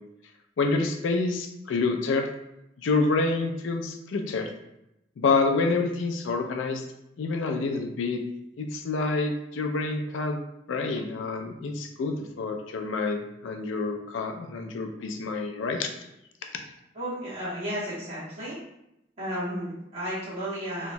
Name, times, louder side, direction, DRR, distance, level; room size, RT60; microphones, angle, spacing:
voice 1, 0.6-2.3 2.8-4.5 5.2-6.8 7.2-8.2 8.6-10.4 10.7-15.9, left 3 dB, 85° left, 5 dB, 0.4 m, -27 dB
voice 2, 16.9-18.6 19.2-20.9, equal, 30° right, -10 dB, 1.2 m, -33 dB
2.9 x 2.2 x 2.6 m, 0.86 s
head